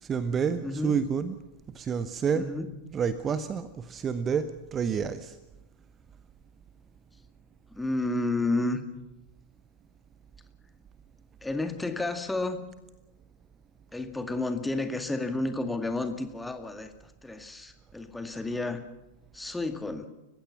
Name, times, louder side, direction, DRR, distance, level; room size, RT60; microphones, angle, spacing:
voice 1, 0.0-1.4 1.7-2.5 2.9-5.4, right 6 dB, 25° right, 13 dB, 0.9 m, -29 dB
voice 2, 0.6-1.0 2.3-2.7 7.7-8.8 11.4-12.6 13.9-18.8 19.3-20.1, left 2 dB, 5° left, 7 dB, 2.0 m, -31 dB
29.5 x 15.5 x 5.9 m, 0.99 s
figure-of-eight pair, 90°, 0 cm